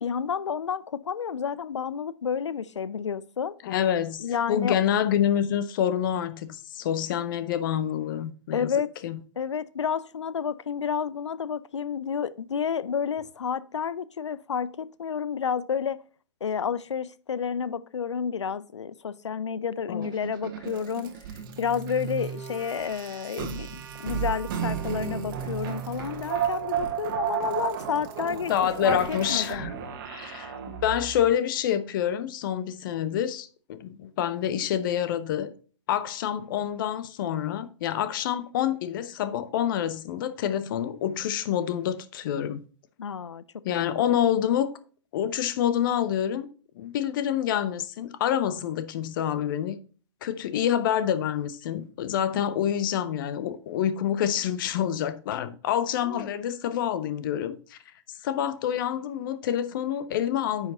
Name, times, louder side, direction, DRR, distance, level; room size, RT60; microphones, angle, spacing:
voice 1, 0.0-3.6 4.2-4.8 8.5-8.9 9.4-16.0 16.4-28.5 28.8-29.7 43.0-43.8 56.0-56.3, left 7 dB, 70° left, 0.6 m, -30 dB
voice 2, 3.6-8.7 9.0-9.2 19.9-20.1 28.5-29.7 30.0-35.5 35.9-42.6 43.6-44.7 45.1-46.5 46.7-49.8 50.2-57.8 58.2-60.7, left 10 dB, 45° left, 0.9 m, -27 dB
sound 1, 20.0-31.3, right 8 dB, 45° right, 1.4 m, -33 dB
9.3 x 4.9 x 3.9 m
figure-of-eight pair, 110°, 16 cm